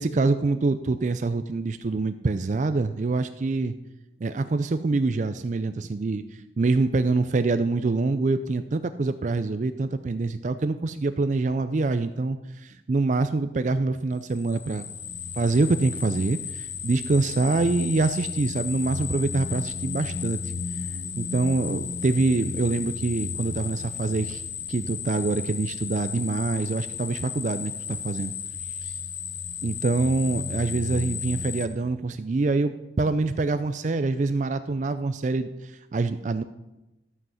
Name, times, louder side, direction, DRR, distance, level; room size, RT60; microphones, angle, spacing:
voice 1, 0.0-3.7 4.2-6.2 6.6-14.8 15.3-20.5 21.2-24.4 24.7-28.3 28.8-28.9 29.6-36.4, right 3 dB, 40° right, 10 dB, 0.4 m, -25 dB
sound 1, 14.3-31.7, left 6 dB, 70° left, 0.9 m, -34 dB
12.0 x 7.7 x 5.7 m, 0.98 s
head